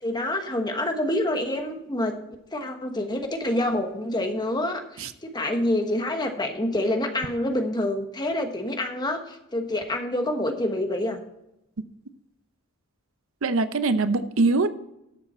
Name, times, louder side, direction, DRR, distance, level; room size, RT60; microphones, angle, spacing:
voice 1, 0.0-2.2 2.5-11.2, left 1 dB, 20° left, 5 dB, 1.2 m, -27 dB
voice 2, 13.4-14.7, right 3 dB, 65° right, 12 dB, 0.7 m, -22 dB
12.0 x 7.3 x 4.3 m, 0.87 s
head